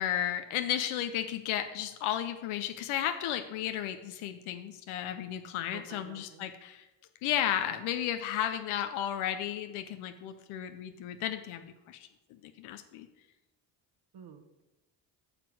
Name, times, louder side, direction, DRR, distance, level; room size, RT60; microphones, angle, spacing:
voice 1, 0.0-6.9 7.2-12.1 12.6-13.1, left 11 dB, 85° left, 8 dB, 0.7 m, -33 dB
voice 2, 5.7-6.5 14.1-14.6, right 7 dB, 55° right, 8 dB, 1.1 m, -50 dB
9.0 x 6.0 x 4.7 m, 1.1 s
supercardioid pair, 65°, 48 cm